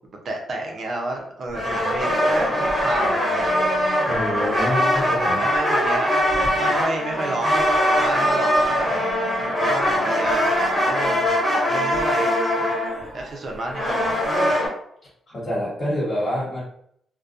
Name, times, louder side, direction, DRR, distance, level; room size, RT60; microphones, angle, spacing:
voice 1, 0.2-3.5 5.0-6.1 6.6-8.9 9.4-11.2 11.5-12.3 13.1-14.3, right 2 dB, 55° right, 1 dB, 0.6 m, -30 dB
sound 1, 1.5-14.7, equal, 15° right, 1.3 m, -21 dB
voice 2, 4.0-5.4 15.3-16.6, left 1 dB, 40° left, -9 dB, 1.3 m, -27 dB
2.3 x 2.2 x 2.5 m, 0.69 s
cardioid pair, 100°, 0 cm